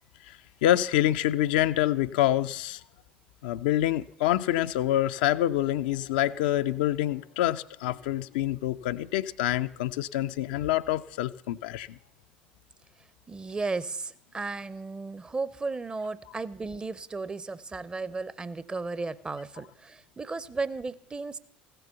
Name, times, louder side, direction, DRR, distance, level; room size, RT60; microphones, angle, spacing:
voice 1, 0.6-2.8 3.4-12.0, left 13 dB, 60° left, 10 dB, 0.4 m, -26 dB
voice 2, 13.3-21.4, right 3 dB, 20° right, 17 dB, 0.6 m, -34 dB
15.5 x 6.9 x 6.9 m, 0.70 s
figure-of-eight pair, 65°, 5 cm